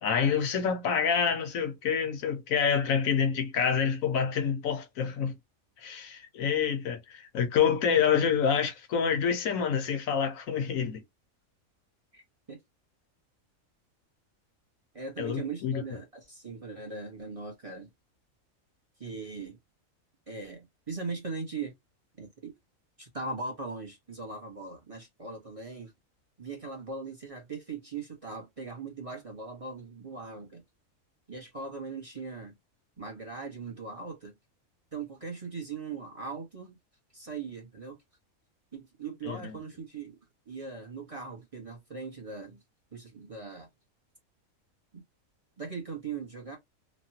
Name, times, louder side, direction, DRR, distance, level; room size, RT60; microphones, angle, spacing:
voice 1, 0.0-5.3 5.8-11.0 15.2-15.8 39.3-39.5, left 7 dB, 75° left, 1.1 m, -27 dB
voice 2, 14.9-17.9 19.0-19.6 20.3-21.7 22.2-22.5 23.0-25.9 26.4-30.6 31.3-32.6 33.0-34.3 34.9-36.8 37.1-38.0 38.7-42.6 42.9-43.7 44.9-45.0 45.6-46.6, right 4 dB, 30° right, 0.9 m, -40 dB
3.1 x 2.2 x 2.7 m
omnidirectional pair, 1.5 m